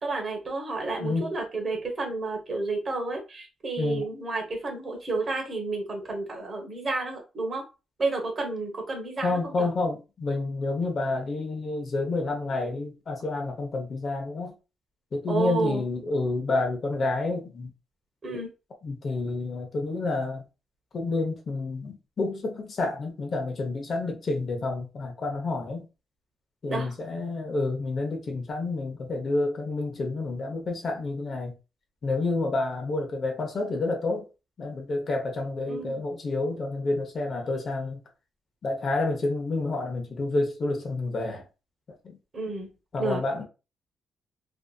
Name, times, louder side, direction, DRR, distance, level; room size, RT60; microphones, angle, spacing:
voice 1, 0.0-7.6 8.0-9.7 15.3-15.8 18.2-18.5 26.7-26.9 35.7-36.0 42.3-42.7 43.0-43.2, right 3 dB, 30° right, 0.9 m, -31 dB
voice 2, 1.0-1.3 3.8-4.1 9.2-14.5 15.1-17.7 18.8-20.4 20.9-25.9 26.6-31.5 32.0-34.3 34.6-38.0 38.6-41.4 42.0-42.2 42.9-43.4, left 3 dB, 40° left, 0.7 m, -29 dB
2.6 x 2.4 x 2.3 m
cardioid pair, 155°, 0 cm